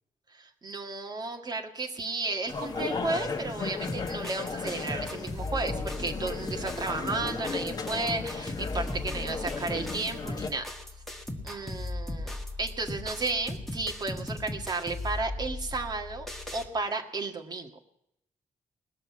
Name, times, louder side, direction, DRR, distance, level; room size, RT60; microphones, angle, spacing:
voice 1, 0.3-10.7 11.4-16.3 16.5-17.7, right 3 dB, 30° right, 3 dB, 1.9 m, -33 dB
sound 1, 2.5-10.5, left 4 dB, 30° left, 1.1 m, -35 dB
sound 2, 3.9-16.7, left 2 dB, ahead, 1.6 m, -38 dB
20.0 x 6.8 x 9.5 m, 0.78 s
wide cardioid pair, 180°, 13 cm